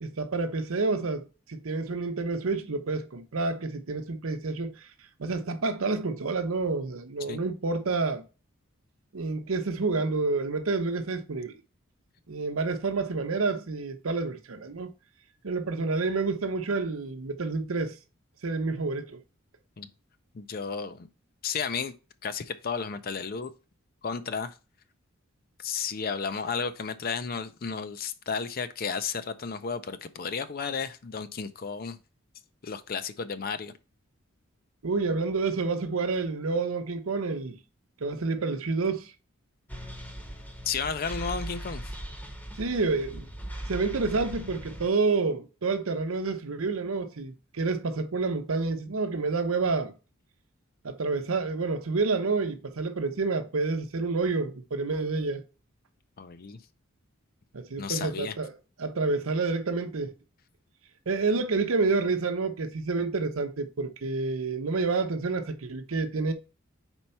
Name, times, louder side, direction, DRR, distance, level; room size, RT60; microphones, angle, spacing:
voice 1, 0.0-4.9 5.2-8.2 9.1-11.5 12.3-14.9 15.4-18.0 18.4-19.2 34.8-37.6 38.0-39.1 42.6-43.3 43.7-49.9 50.8-55.4 57.5-58.5 58.8-60.1 61.1-66.3, right 3 dB, 85° right, 0.8 m, -29 dB
voice 2, 20.3-21.1 21.4-21.9 22.2-23.5 24.0-24.6 25.6-32.0 32.6-33.7 40.7-41.8 56.2-56.6 57.8-58.3, left 5 dB, 45° left, 0.5 m, -33 dB
sound 1, 39.7-44.9, right 1 dB, 10° left, 0.8 m, -39 dB
4.5 x 4.4 x 5.5 m
head